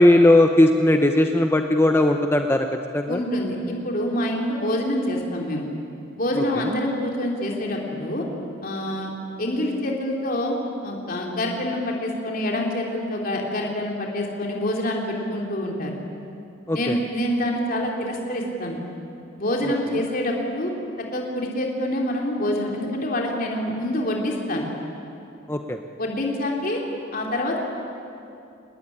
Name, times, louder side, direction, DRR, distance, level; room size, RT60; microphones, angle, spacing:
voice 1, 0.0-2.7 2.9-3.2 6.4-6.7 16.7-17.0 25.5-25.8, left 1 dB, 10° left, 5 dB, 0.9 m, -18 dB
voice 2, 3.1-5.7 6.2-8.2 8.6-9.1 9.4-10.6 10.8-15.9 16.7-18.8 19.4-20.7 21.1-24.6 26.0-26.8 27.1-27.6, left 1 dB, 45° left, 0 dB, 3.3 m, -26 dB
26.0 x 19.5 x 9.9 m, 2.7 s
head